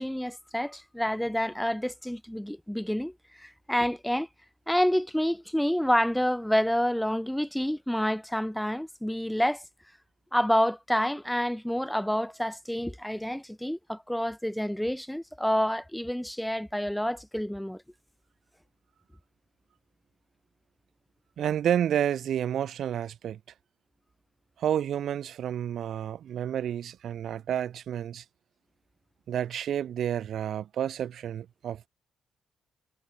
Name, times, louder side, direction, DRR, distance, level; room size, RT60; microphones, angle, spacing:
voice 1, 0.0-4.3 4.7-9.6 10.3-17.8, equal, 5° left, 0.8 m, -28 dB
voice 2, 21.4-23.4 24.6-28.2 29.3-31.9, right 10 dB, 65° right, 1.1 m, -30 dB
cardioid pair, 90°, 0 cm